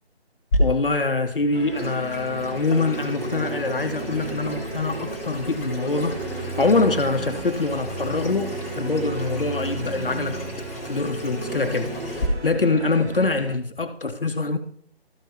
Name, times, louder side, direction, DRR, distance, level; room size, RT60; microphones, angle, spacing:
Water tap faucet / Sink (filling or washing), 0.5-12.3, equal, 15° left, 1.0 m, -32 dB
voice 1, 0.6-10.4 10.8-14.6, left 3 dB, 55° left, 0.8 m, -24 dB
sound 1, 1.5-13.6, right 2 dB, 80° right, 1.0 m, -35 dB
sound 2, 6.0-6.5 6.9-7.4 7.7-8.5 8.9-13.5, left 3 dB, 40° left, 1.1 m, -44 dB
13.0 x 5.3 x 4.3 m
figure-of-eight pair, 155°, 32 cm